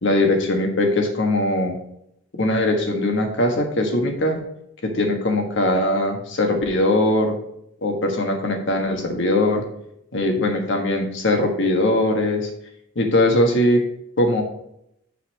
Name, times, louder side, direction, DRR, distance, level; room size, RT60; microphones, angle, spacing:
voice 1, 0.0-1.7 2.3-4.4 4.8-7.3 7.8-9.6 10.1-12.5 12.9-13.8 14.2-14.4, left 1 dB, 65° left, 4 dB, 1.4 m, -20 dB
7.3 x 4.0 x 6.3 m, 0.78 s
head